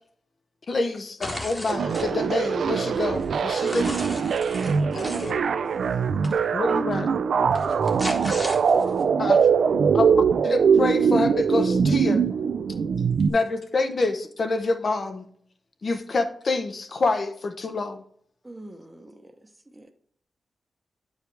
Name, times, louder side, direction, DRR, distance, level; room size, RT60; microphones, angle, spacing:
voice 1, 0.7-4.0 6.5-7.1 9.2-9.5 9.9-10.1 10.4-12.2 13.3-15.3 15.8-18.0, left 3 dB, 50° left, 8 dB, 0.8 m, -27 dB
sound 1, 1.2-2.1 2.6-5.3 6.2-6.4 7.6-9.0, left 1 dB, 20° left, 1.4 m, -35 dB
sound 2, 1.7-13.3, right 6 dB, 80° right, 0.4 m, -22 dB
voice 2, 4.9-6.2 7.5-8.2, left 2 dB, 75° left, 1 dB, 1.8 m, -40 dB
voice 3, 8.0-8.4 9.4-10.1 18.4-19.4 19.7-19.9, right 1 dB, 15° right, 6 dB, 0.8 m, -45 dB
9.3 x 4.8 x 3.3 m, 0.63 s
wide cardioid pair, 95°, 0 cm